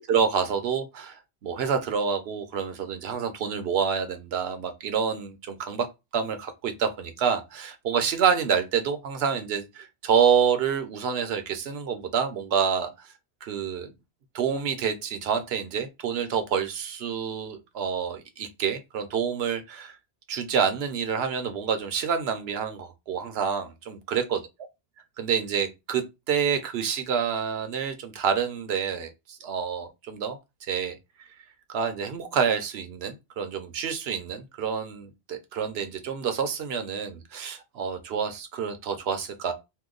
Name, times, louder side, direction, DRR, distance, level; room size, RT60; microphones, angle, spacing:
voice 1, 0.1-5.9 6.1-13.1 13.4-13.9 14.3-20.0 20.3-24.4 25.2-31.3 31.7-39.5, right 7 dB, 75° right, 0.9 m, -28 dB
2.8 x 2.2 x 3.7 m
omnidirectional pair, 1.1 m